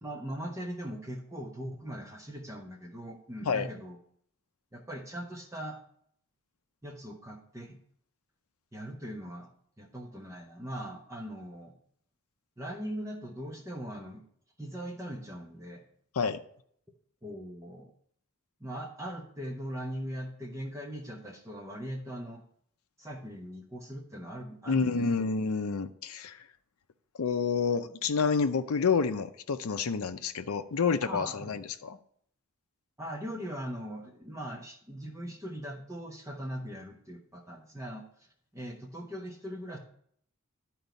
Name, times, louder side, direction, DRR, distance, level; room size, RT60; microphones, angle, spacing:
voice 1, 0.0-4.0 4.7-5.8 6.8-7.8 8.7-9.5 9.8-11.7 12.6-14.2 14.6-15.8 17.2-17.9 18.6-22.4 23.0-25.0 31.0-31.6 33.0-38.3 38.5-39.8, equal, 15° right, 1 dB, 1.0 m, -40 dB
voice 2, 24.7-26.4 27.2-32.0, left 5 dB, 85° left, 9 dB, 0.5 m, -29 dB
11.5 x 4.6 x 4.0 m, 0.63 s
head